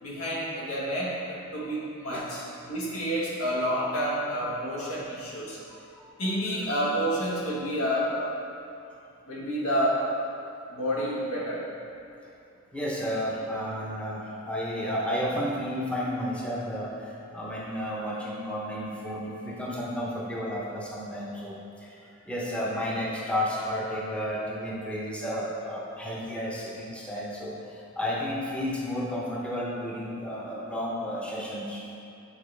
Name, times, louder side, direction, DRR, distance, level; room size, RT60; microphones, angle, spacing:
voice 1, 0.0-5.6 6.2-8.4 9.3-10.1 10.7-11.6, equal, 85° left, -5 dB, 1.2 m, -29 dB
voice 2, 5.7-6.0 12.7-31.9, equal, 5° left, -5 dB, 0.7 m, -32 dB
7.3 x 4.4 x 3.2 m, 2.6 s
head